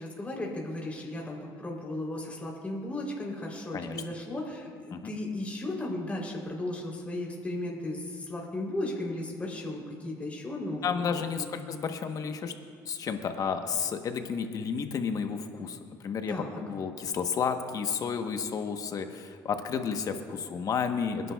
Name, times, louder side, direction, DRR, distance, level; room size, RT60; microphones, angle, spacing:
voice 1, 0.0-11.4 16.3-16.6, left 1 dB, 20° left, -1 dB, 3.4 m, -35 dB
voice 2, 10.8-12.5 12.8-21.3, left 6 dB, 50° left, 6 dB, 1.0 m, -32 dB
28.0 x 11.0 x 2.3 m, 2.2 s
supercardioid pair, 85°, 8 cm